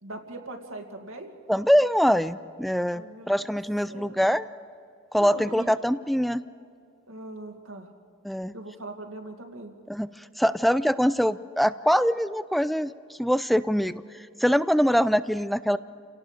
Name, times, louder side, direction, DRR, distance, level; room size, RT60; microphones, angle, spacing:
voice 1, 0.0-1.3 2.9-3.3 3.9-4.3 5.2-5.7 7.1-7.9 8.5-9.8, right 2 dB, 70° right, 3 dB, 2.3 m, -40 dB
voice 2, 1.5-4.5 5.1-6.4 8.2-8.5 9.9-10.1 10.4-12.9 13.2-14.0 14.4-15.8, equal, ahead, 14 dB, 0.4 m, -23 dB
29.5 x 17.5 x 5.0 m, 2.4 s
head